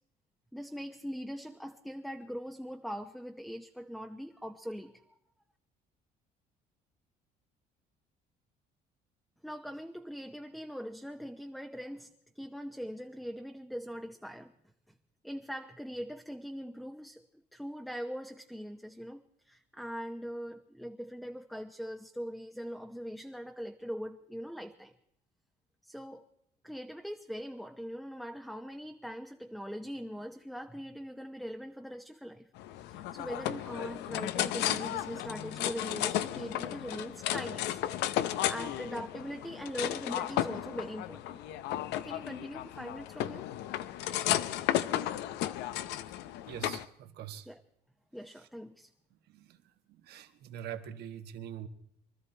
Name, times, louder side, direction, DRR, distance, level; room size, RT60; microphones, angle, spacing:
voice 1, 0.5-5.2 9.4-14.5 15.2-24.9 25.8-26.2 26.6-32.5 32.9-37.8 38.5-41.4 42.0-43.5 47.5-47.6 48.1-48.9, equal, ahead, 5 dB, 0.8 m, -41 dB
sound 1, 32.6-46.8, left 13 dB, 85° left, 0.7 m, -34 dB
voice 2, 46.5-47.5 49.3-49.6 49.9-51.7, right 10 dB, 75° right, 7 dB, 1.5 m, -43 dB
24.0 x 13.0 x 4.4 m, 0.74 s
cardioid pair, 110°, 17 cm